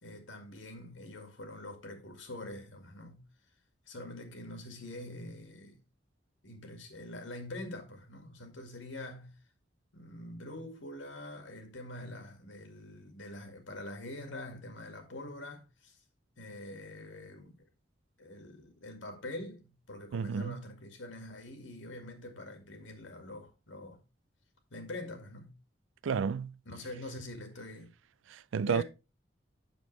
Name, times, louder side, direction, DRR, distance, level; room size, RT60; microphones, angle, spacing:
voice 1, 0.0-3.2 3.9-5.8 6.4-9.4 9.9-16.0 16.4-17.7 18.2-24.0 24.7-25.5 26.7-27.9 28.7-28.8, left 1 dB, 80° left, 2.0 m, -45 dB
voice 2, 20.1-20.6 26.0-26.5 28.3-28.8, right 6 dB, 80° right, 0.4 m, -31 dB
7.8 x 6.8 x 3.2 m
head